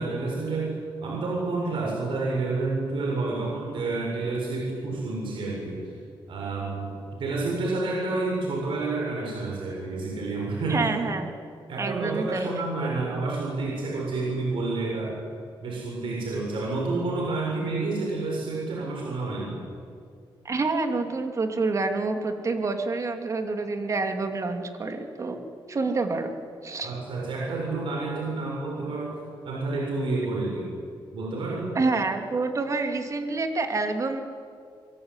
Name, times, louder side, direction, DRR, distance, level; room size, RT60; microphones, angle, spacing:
voice 1, 0.0-5.9 6.3-10.9 11.7-15.2 15.6-19.6 26.8-30.7 31.1-31.7, right 3 dB, 70° right, -2 dB, 7.2 m, -29 dB
voice 2, 10.7-11.3 11.8-12.5 12.8-12.9 20.4-25.4 25.7-26.4 26.6-26.9 31.7-34.2, right 3 dB, 35° right, 5 dB, 2.9 m, -27 dB
26.0 x 23.0 x 9.9 m, 2.3 s
wide cardioid pair, 135°, 9 cm